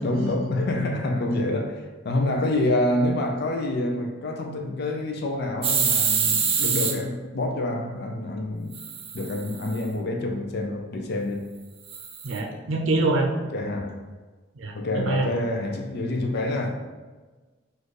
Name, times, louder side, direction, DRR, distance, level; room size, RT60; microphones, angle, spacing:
voice 1, 0.0-8.8 9.1-11.4 13.5-14.0 14.7-16.8, left 1 dB, 60° left, 3 dB, 0.5 m, -27 dB
sound 1, 5.6-6.9 8.7-9.8 11.9-12.4, right 6 dB, 30° right, 0.5 m, -25 dB
voice 2, 12.2-13.3 14.6-15.3, right 2 dB, 85° right, 0 dB, 0.6 m, -25 dB
4.3 x 2.5 x 4.7 m, 1.3 s
head